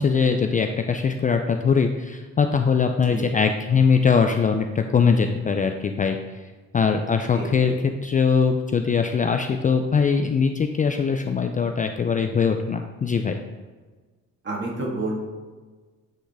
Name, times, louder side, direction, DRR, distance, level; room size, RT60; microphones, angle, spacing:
voice 1, 0.0-6.2 6.7-13.4, left 5 dB, 25° left, 5 dB, 0.4 m, -21 dB
voice 2, 7.3-7.7 14.4-15.2, right 2 dB, 40° right, -1 dB, 1.8 m, -29 dB
8.5 x 3.9 x 3.5 m, 1.3 s
cardioid pair, 90°, 30 cm